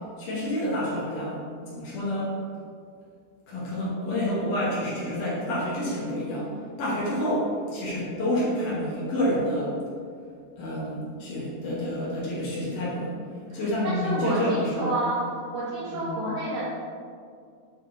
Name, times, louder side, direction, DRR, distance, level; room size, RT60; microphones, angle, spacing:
voice 1, 0.2-2.4 3.5-6.5 6.8-9.8 10.6-13.1 13.5-14.9 15.9-16.1, left 1 dB, 70° left, -8 dB, 2.0 m, -28 dB
voice 2, 13.5-15.2 15.5-16.6, right 2 dB, 60° right, -11 dB, 2.5 m, -30 dB
9.2 x 3.5 x 3.9 m, 2.2 s
omnidirectional pair, 5.5 m